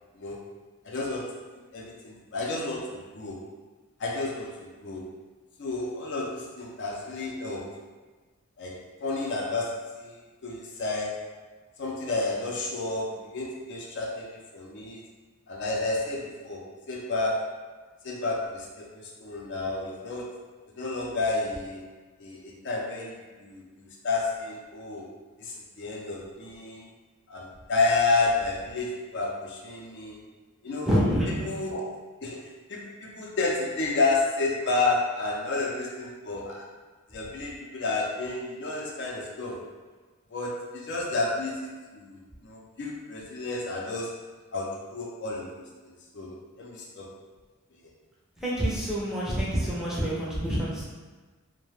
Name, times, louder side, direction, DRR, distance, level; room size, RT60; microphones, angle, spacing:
voice 1, 0.1-0.5 0.8-1.3 1.7-3.4 4.0-5.1 5.6-7.7 8.6-10.2 10.4-11.3 11.8-15.0 15.5-17.7 18.0-20.3 20.8-21.8 22.2-25.1 25.4-26.9 27.3-30.2 30.6-30.9 31.4-31.8 32.2-36.6 37.1-39.6 40.3-44.1 44.5-47.1 47.8-47.9, left 3 dB, 55° left, -3 dB, 0.4 m, -31 dB
voice 2, 30.8-31.5 48.4-50.8, equal, 5° right, -7 dB, 0.5 m, -27 dB
2.3 x 2.1 x 3.1 m, 1.3 s
head